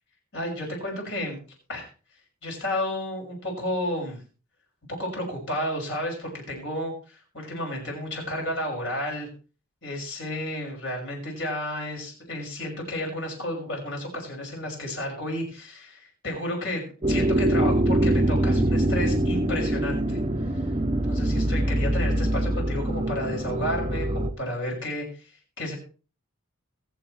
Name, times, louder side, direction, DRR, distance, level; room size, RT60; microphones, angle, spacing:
voice 1, 0.3-1.4 1.7-1.9 2.4-4.2 4.9-9.3 9.8-20.2 20.5-20.6 21.1-25.3 25.6-25.8, left 1 dB, 60° left, 0 dB, 6.0 m, -32 dB
sound 1, 17.0-24.3, right 1 dB, 25° right, 0.8 m, -24 dB
22.0 x 7.8 x 3.2 m, 0.36 s
head